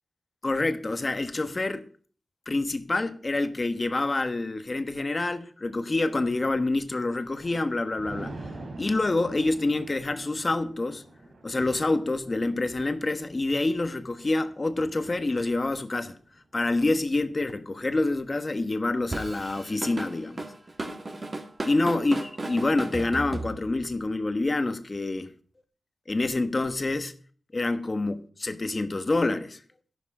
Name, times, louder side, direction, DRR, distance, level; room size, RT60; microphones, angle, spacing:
voice 1, 0.4-1.8 2.5-8.3 8.8-11.0 11.4-16.1 16.5-20.4 21.7-25.3 26.1-27.1 27.5-29.6, left 2 dB, 30° left, 1.3 m, -27 dB
Thunder, 6.9-18.4 18.8-19.2, right 2 dB, 70° right, 4.1 m, -46 dB
Drum kit / Drum, 19.1-23.9, right 2 dB, 30° right, 2.2 m, -35 dB
13.5 x 11.5 x 5.0 m
wide cardioid pair, 110°, 0 cm